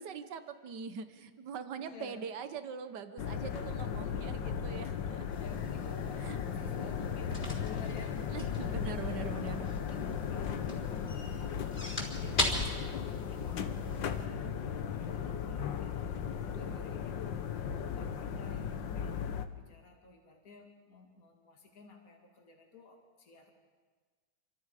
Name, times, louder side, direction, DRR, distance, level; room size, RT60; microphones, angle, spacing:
voice 1, 0.0-5.3 6.2-6.4 8.3-9.7, right 6 dB, 70° right, 9 dB, 1.8 m, -42 dB
voice 2, 1.8-2.3 3.8-4.4 5.3-8.4 8.7-9.6 9.9-12.5 13.0-23.5, left 4 dB, 50° left, 0 dB, 3.0 m, -53 dB
sound 1, 3.2-19.5, left 7 dB, 85° left, 1.8 m, -36 dB
sound 2, 5.3-14.3, left 1 dB, 35° left, 3.7 m, -40 dB
29.0 x 25.0 x 5.0 m, 1.5 s
omnidirectional pair, 2.0 m